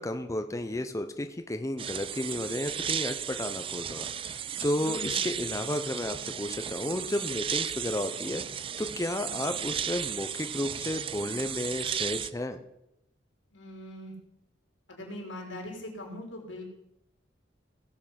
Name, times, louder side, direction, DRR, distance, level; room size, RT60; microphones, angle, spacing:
voice 1, 0.0-12.6, left 1 dB, 15° left, 7 dB, 0.6 m, -33 dB
sound 1, 1.8-12.3, right 9 dB, 30° right, 0.4 m, -34 dB
voice 2, 4.8-5.4 13.5-14.1 14.9-16.6, left 1 dB, 85° left, 0 dB, 4.0 m, -41 dB
17.5 x 7.5 x 5.8 m, 0.85 s
head